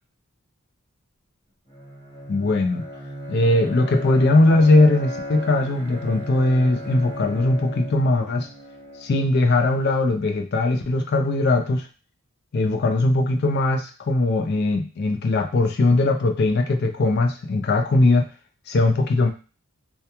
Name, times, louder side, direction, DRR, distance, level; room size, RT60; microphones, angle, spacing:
Bowed string instrument, 1.7-9.5, equal, 20° left, 0.8 m, -36 dB
voice 1, 2.3-2.8 3.3-8.5 9.0-11.9 12.5-18.3 18.7-19.3, left 2 dB, 45° left, 5 dB, 0.3 m, -20 dB
2.3 x 2.2 x 2.8 m, 0.34 s
head